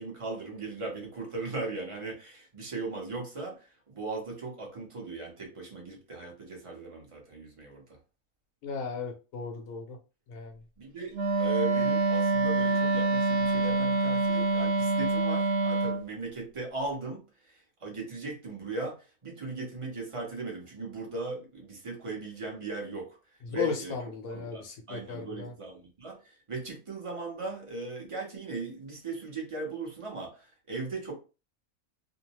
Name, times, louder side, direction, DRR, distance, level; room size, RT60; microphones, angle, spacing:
voice 1, 0.0-7.8 10.8-17.2 17.8-19.0 19.2-23.1 23.5-24.0 24.3-31.1, right 3 dB, 30° right, 0.7 m, -38 dB
voice 2, 8.6-10.0 10.3-10.6 23.4-25.5, left 5 dB, 75° left, 1.0 m, -36 dB
Wind instrument woodwind instrument, 11.1-16.0, right 3 dB, 70° right, 1.0 m, -26 dB
2.7 x 2.0 x 2.8 m
omnidirectional pair, 1.6 m